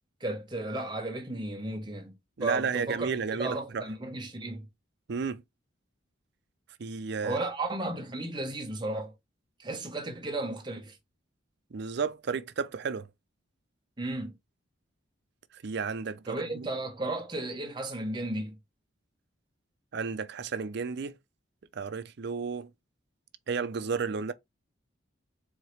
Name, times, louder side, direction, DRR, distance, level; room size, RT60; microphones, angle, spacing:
voice 1, 0.2-3.1 3.4-4.7 7.2-9.1 9.6-11.0 14.0-14.4 16.3-18.6, right 2 dB, 20° right, 0.9 m, -34 dB
voice 2, 2.4-3.8 5.1-5.4 6.8-7.4 11.7-13.1 15.5-16.7 19.9-21.2 21.7-22.7 23.5-24.3, right 5 dB, 55° right, 0.5 m, -32 dB
4.5 x 2.8 x 3.2 m
head